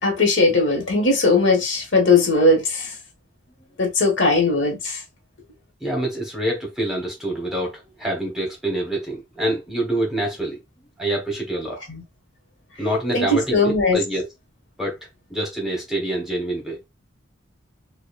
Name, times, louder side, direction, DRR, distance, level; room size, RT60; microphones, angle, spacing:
voice 1, 0.0-2.9 3.8-5.0 11.9-12.0 13.1-14.0, left 3 dB, 65° left, 1.5 m, -19 dB
voice 2, 5.8-10.6 11.0-11.8 12.8-14.3 14.8-15.0 15.3-16.8, right 1 dB, 5° right, 1.1 m, -26 dB
5.0 x 2.3 x 2.4 m
head